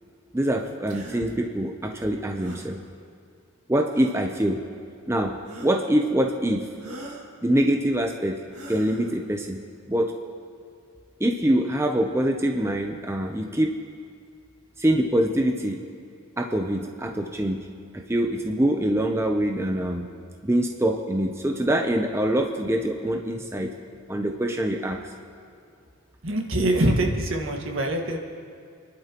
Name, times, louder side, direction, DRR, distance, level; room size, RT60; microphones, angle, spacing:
voice 1, 0.3-2.8 3.7-4.6 5.1-6.9 7.4-8.4 8.7-9.6 9.9-10.1 11.2-13.7 14.8-15.8 16.4-17.7 17.9-20.1 20.4-23.7 24.1-25.1, right 1 dB, 10° right, 3 dB, 0.6 m, -24 dB
sound 1, 0.9-1.2 2.4-2.7 3.9-4.3 5.5-6.0 6.8-7.3 8.5-9.2, right 1 dB, 90° right, 2.1 m, -43 dB
voice 2, 26.2-28.2, right 1 dB, 70° right, 2 dB, 1.7 m, -24 dB
29.0 x 11.5 x 3.0 m, 2.4 s
head